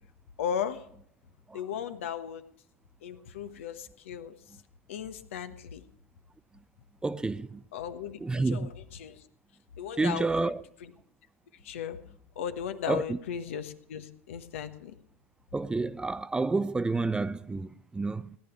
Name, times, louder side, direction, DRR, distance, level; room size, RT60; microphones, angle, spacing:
voice 1, 0.4-0.9 1.5-2.4 3.0-4.6 4.9-5.8 7.7-8.7 9.0-9.2 9.8-10.5 10.8-10.9 11.6-12.0 12.3-15.0, left 8 dB, 70° left, 1.3 m, -36 dB
voice 2, 7.0-7.6 8.2-8.7 10.0-10.6 12.9-13.2 15.5-18.4, right 3 dB, 10° right, 0.5 m, -29 dB
18.0 x 10.5 x 6.2 m
hypercardioid pair, 85°, 7 cm